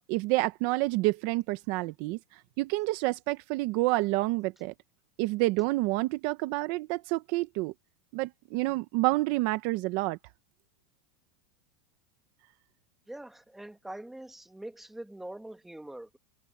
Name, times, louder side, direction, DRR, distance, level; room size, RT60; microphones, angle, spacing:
voice 1, 0.0-2.2 2.6-4.7 5.2-7.7 8.1-10.2, right 20 dB, 50° right, 0.9 m, -28 dB
voice 2, 13.1-16.2, right 1 dB, 5° right, 1.8 m, -43 dB
supercardioid pair, 160°, 8 cm